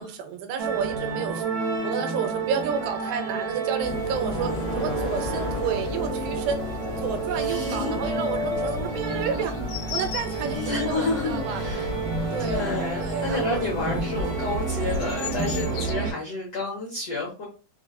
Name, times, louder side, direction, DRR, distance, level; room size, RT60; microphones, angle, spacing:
voice 1, 0.0-1.4 1.8-6.6 7.0-9.6 9.9-10.6 10.9-11.6 12.3-12.6 13.0-13.7 14.9-15.0, right 7 dB, 85° right, 2.8 m, -31 dB
sound 1, 0.6-16.1, right 4 dB, 70° right, 1.2 m, -30 dB
sound 2, 3.8-15.9, left 5 dB, 90° left, 2.8 m, -34 dB
voice 2, 7.3-8.3 9.0-9.3 10.4-11.9 12.2-17.4, left 2 dB, 70° left, 1.4 m, -30 dB
6.1 x 2.3 x 2.6 m
omnidirectional pair, 4.7 m